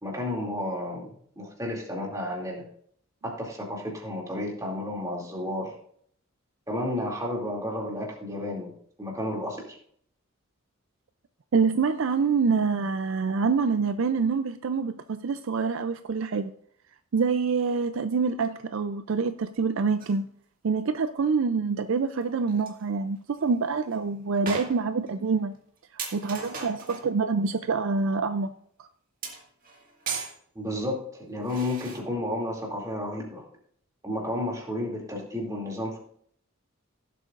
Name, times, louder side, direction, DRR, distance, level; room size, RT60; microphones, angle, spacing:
voice 1, 0.0-2.6 3.2-5.7 6.7-8.7 9.0-9.8 30.2-30.3 30.5-31.0 31.3-33.4 34.0-36.0, left 1 dB, 15° right, 2.5 m, -32 dB
voice 2, 11.5-16.5 17.1-20.3 20.6-25.5 25.9-28.5, right 5 dB, 60° right, 0.4 m, -26 dB
sound 1, 20.0-20.2 22.2-22.3 22.5-22.8 23.4-23.5 23.9-24.0 24.5-25.1 25.5-25.6 26.0-27.1 29.2-30.4 31.4-32.0, right 5 dB, 40° right, 1.8 m, -37 dB
17.0 x 7.7 x 2.5 m
head